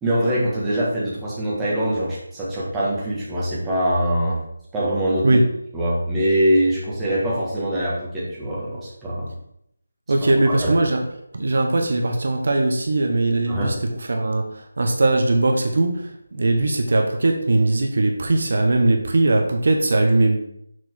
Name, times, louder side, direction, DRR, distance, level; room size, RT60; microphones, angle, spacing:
voice 1, 0.0-4.4 4.7-5.4 5.7-9.3 10.4-10.8 13.5-13.8, right 1 dB, 10° right, -8 dB, 1.6 m, -23 dB
voice 2, 10.1-11.0 11.3-13.7 14.1-20.4, right 2 dB, 60° right, 3 dB, 1.1 m, -20 dB
6.3 x 4.5 x 4.6 m, 0.74 s
figure-of-eight pair, 165°, 0 cm